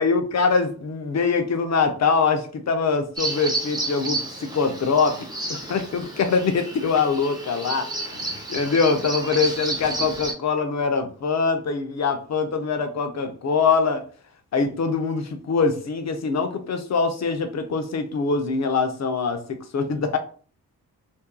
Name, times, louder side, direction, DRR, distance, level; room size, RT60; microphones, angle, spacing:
voice 1, 0.0-14.0 14.5-20.2, left 4 dB, 45° left, 7 dB, 0.6 m, -23 dB
Bird vocalization bird call bird song, 3.2-10.3, right 2 dB, 10° right, 0.7 m, -31 dB
2.6 x 2.3 x 2.2 m, 0.42 s
cardioid pair, 50°, 39 cm